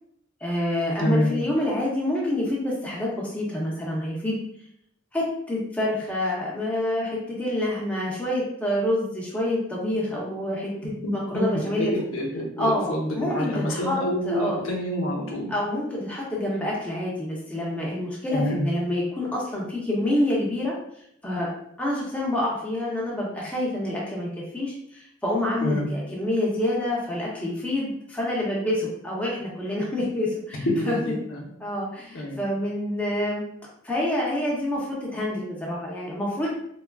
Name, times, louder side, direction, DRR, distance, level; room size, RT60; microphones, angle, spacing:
voice 1, 0.4-4.4 5.1-11.9 12.6-14.0 14.2-14.6 15.5-20.7 21.2-31.1 31.6-33.4 33.8-36.5, left 1 dB, 5° left, -5 dB, 0.6 m, -27 dB
voice 2, 1.0-1.4 11.0-15.5 18.3-18.7 25.6-25.9 30.6-31.5 32.1-32.4, equal, 85° left, -1 dB, 0.7 m, -27 dB
3.4 x 2.3 x 2.3 m, 0.72 s
head